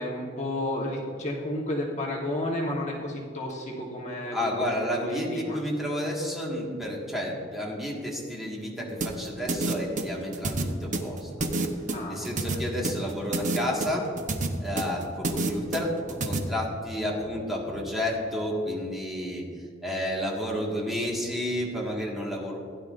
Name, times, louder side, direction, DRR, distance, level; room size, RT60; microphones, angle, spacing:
voice 1, 0.0-4.6 4.9-5.6 11.9-12.6, left 1 dB, 40° left, -2 dB, 1.3 m, -32 dB
voice 2, 4.3-11.5 12.1-14.1 14.6-15.9 16.2-19.4 19.8-22.6, left 1 dB, ahead, -4 dB, 1.7 m, -31 dB
sound 1, 9.0-16.4, right 2 dB, 40° right, 0.9 m, -29 dB
16.0 x 10.0 x 2.6 m, 2.3 s
head